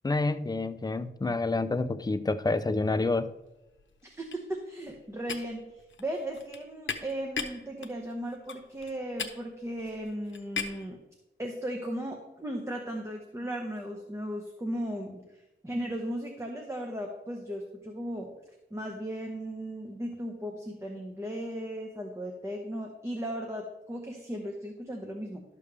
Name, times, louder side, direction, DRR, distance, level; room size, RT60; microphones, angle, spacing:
voice 1, 0.0-3.3, left 3 dB, 20° left, 0.4 m, -28 dB
sound 1, 3.1-3.4 3.7-10.9, left 5 dB, 80° left, 0.8 m, -39 dB
voice 2, 4.1-5.6 6.0-11.0 11.4-18.3 18.7-25.4, equal, 15° right, 0.9 m, -36 dB
12.0 x 6.9 x 3.3 m
wide cardioid pair, 140°, 20 cm